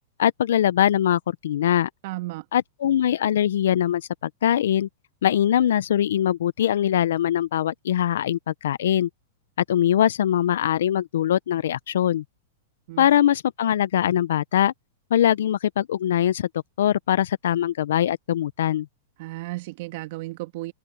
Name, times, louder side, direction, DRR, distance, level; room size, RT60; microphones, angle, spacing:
voice 1, 0.2-1.9 2.5-4.9 5.2-9.1 9.7-12.2 13.0-14.7 15.1-16.5 16.8-18.9, left 11 dB, 75° left, 0.5 m, -22 dB
voice 2, 2.0-2.4 12.9-13.1 19.2-20.7, right 19 dB, 55° right, 2.4 m, -34 dB
open air
hypercardioid pair, 125°, 0 cm